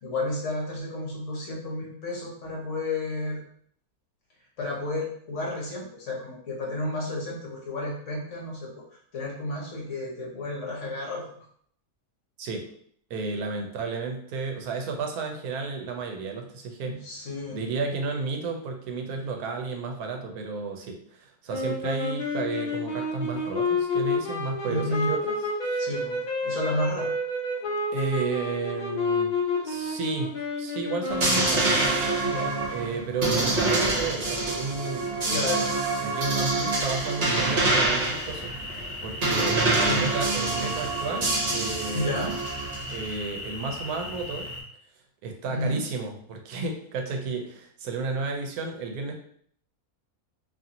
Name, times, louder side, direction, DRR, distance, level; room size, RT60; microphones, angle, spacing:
voice 1, 0.0-3.5 4.6-8.8 9.1-11.3 16.8-17.6 24.7-25.1 25.8-27.1 32.2-32.5 35.3-35.7 39.8-40.1 41.9-42.4 45.5-45.9, left 2 dB, 60° left, -2 dB, 1.1 m, -32 dB
voice 2, 13.1-17.0 17.5-25.4 25.6-25.9 27.9-29.3 29.6-31.8 32.7-35.7 36.0-42.2 42.9-44.5 45.2-49.1, right 4 dB, 80° right, 3 dB, 1.1 m, -32 dB
sound 1, 21.5-32.2, left 2 dB, 90° left, 0.4 m, -29 dB
sound 2, 31.1-43.0, right 2 dB, 55° right, 1.0 m, -26 dB
sound 3, 37.3-44.6, left 1 dB, 15° right, 1.0 m, -37 dB
2.7 x 2.5 x 2.7 m, 0.62 s
omnidirectional pair, 1.6 m